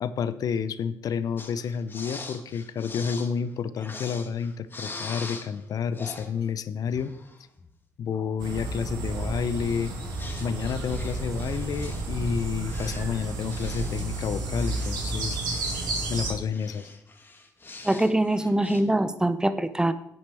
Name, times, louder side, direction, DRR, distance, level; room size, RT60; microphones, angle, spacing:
voice 1, 0.0-7.1 8.0-9.9 10.4-15.4 16.1-16.9, left 7 dB, 60° left, 14 dB, 0.6 m, -30 dB
sound 1, 1.4-5.6 5.9-6.3 6.8-7.7 9.5-9.6 10.1-16.2 16.5-18.8, left 3 dB, 30° left, 1.4 m, -43 dB
sound 2, 8.4-16.3, right 2 dB, 75° right, 2.3 m, -31 dB
voice 2, 17.8-19.9, right 1 dB, 10° right, 13 dB, 0.7 m, -23 dB
10.5 x 8.4 x 3.4 m, 0.80 s
supercardioid pair, 70°, 7 cm